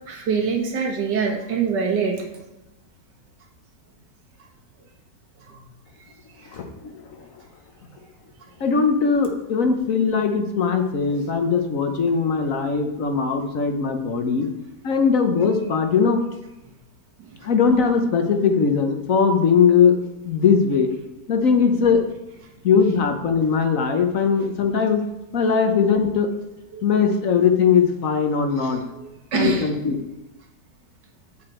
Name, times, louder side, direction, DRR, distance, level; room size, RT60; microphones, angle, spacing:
voice 1, 0.1-2.3 5.5-5.6 6.4-6.5 17.2-17.3 26.7-26.8 29.0-29.7, right 5 dB, 85° right, 1 dB, 2.1 m, -24 dB
voice 2, 6.5-7.3 8.6-14.5 14.8-16.2 17.4-20.0 20.2-20.9 21.3-22.0 22.6-25.0 25.3-26.3 26.8-28.8 29.3-30.0, left 6 dB, 55° left, 6 dB, 1.2 m, -20 dB
8.2 x 7.8 x 4.4 m, 0.98 s
omnidirectional pair, 1.8 m